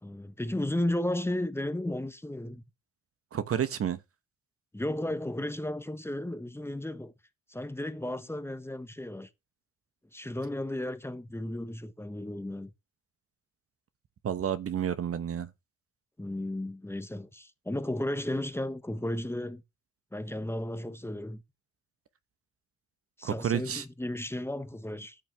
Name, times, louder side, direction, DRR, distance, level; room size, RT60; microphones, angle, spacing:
voice 1, 0.0-2.6 4.7-7.1 7.5-9.3 10.1-12.7 16.2-19.6 20.1-21.4 23.2-25.2, left 1 dB, 10° left, 1.2 m, -34 dB
voice 2, 3.3-4.0 14.2-15.5 23.2-23.8, right 9 dB, 50° right, 1.1 m, -30 dB
13.5 x 6.0 x 3.4 m
cardioid pair, 90°, 30 cm